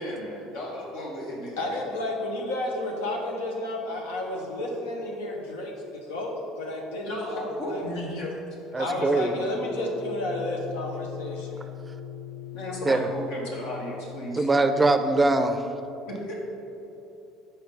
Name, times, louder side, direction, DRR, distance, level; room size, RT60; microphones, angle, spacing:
voice 1, 0.0-1.6 7.0-8.3 8.8-9.3 12.5-14.4 16.1-16.3, left 1 dB, 75° left, -2 dB, 1.4 m, -34 dB
voice 2, 1.6-7.8 8.8-11.6, left 1 dB, 90° left, 0 dB, 0.9 m, -32 dB
voice 3, 8.7-9.4 12.9-13.1 14.4-15.7, right 2 dB, 20° right, 8 dB, 0.4 m, -22 dB
sound 1, 9.6-14.8, left 9 dB, 25° left, 1.2 m, -40 dB
5.8 x 4.4 x 5.3 m, 2.9 s
supercardioid pair, 80°, 0 cm